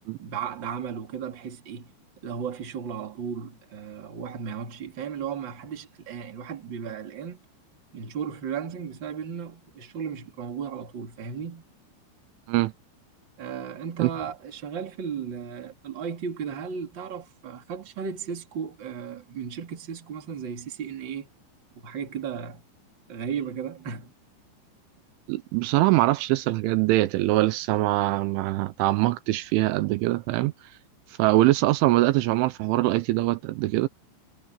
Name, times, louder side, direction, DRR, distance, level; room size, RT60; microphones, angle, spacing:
voice 1, 0.2-1.9 2.2-7.4 7.9-11.6 13.4-21.3 21.8-22.6 23.1-24.1 25.6-25.7, right 7 dB, 30° right, 2.4 m, -35 dB
voice 2, 25.3-30.5 31.2-33.9, right 18 dB, 80° right, 3.2 m, -23 dB
omnidirectional pair, 5.6 m